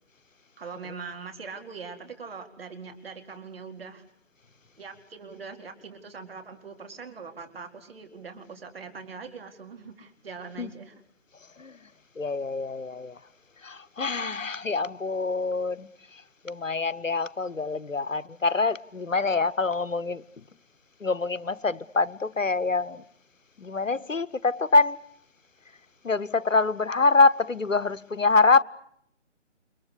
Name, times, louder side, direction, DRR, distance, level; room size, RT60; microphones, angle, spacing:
voice 1, 0.6-4.0 4.8-10.9, right 5 dB, 50° right, 4.3 m, -42 dB
voice 2, 11.4-11.9 12.2-13.2 13.6-20.4 21.0-23.0 23.6-25.0 26.0-28.6, left 3 dB, 90° left, 1.0 m, -25 dB
30.0 x 22.5 x 8.3 m
figure-of-eight pair, 150°, 38 cm